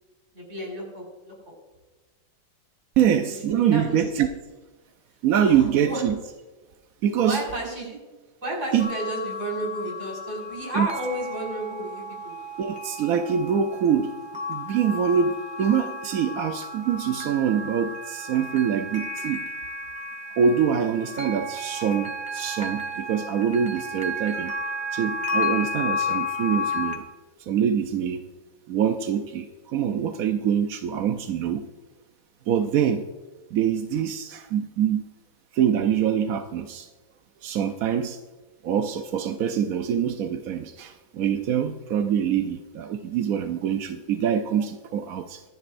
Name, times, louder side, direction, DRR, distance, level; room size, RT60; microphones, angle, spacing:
voice 1, 0.3-1.5 3.7-4.2 5.4-6.0 7.2-8.0 8.4-12.4, right 1 dB, 40° right, -3 dB, 5.7 m, -32 dB
voice 2, 3.0-4.3 5.2-6.2 7.0-7.4 8.7-8.9 10.7-10.9 12.6-14.2 14.5-19.5 20.4-24.5 24.9-27.0 27.4-28.3 28.7-31.7 32.5-33.1 33.5-35.0 35.5-36.9 37.4-38.2 38.6-45.4, right 8 dB, 65° right, 6 dB, 0.9 m, -24 dB
sound 1, 8.8-27.0, left 2 dB, 5° right, 1.2 m, -33 dB
25.0 x 11.0 x 2.6 m, 1.2 s
omnidirectional pair, 2.0 m